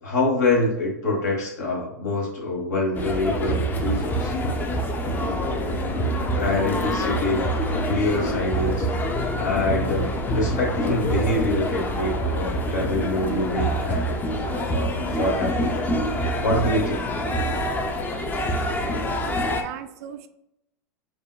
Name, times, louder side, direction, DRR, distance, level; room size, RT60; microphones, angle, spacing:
voice 1, 0.0-4.3 6.3-7.4 7.8-8.9 9.3-14.1 14.5-15.8 16.4-16.9, left 2 dB, 80° left, -2 dB, 1.4 m, -25 dB
sound 1, 2.9-19.6, equal, 20° left, 0.5 m, -26 dB
sound 2, 3.9-14.5, left 3 dB, 55° left, 0.7 m, -39 dB
voice 2, 19.2-20.3, right 10 dB, 65° right, 10 dB, 0.4 m, -39 dB
5.2 x 2.2 x 2.3 m, 0.84 s
hypercardioid pair, 110°, 9 cm